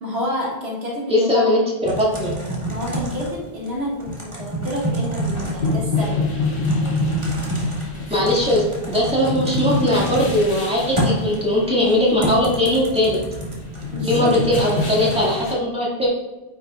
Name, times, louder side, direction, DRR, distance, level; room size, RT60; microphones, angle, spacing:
voice 1, 0.0-1.5 2.7-6.3 8.1-8.2 13.9-14.3, equal, 85° right, -4 dB, 2.1 m, -29 dB
voice 2, 1.1-2.3 8.1-13.2 14.1-16.1, left 1 dB, 5° right, -6 dB, 2.1 m, -19 dB
Typing, 1.8-15.2, right 1 dB, 30° right, 1.8 m, -28 dB
sound 1, 5.0-15.5, left 4 dB, 60° left, 1.4 m, -28 dB
9.1 x 6.1 x 2.4 m, 1.1 s
omnidirectional pair, 1.0 m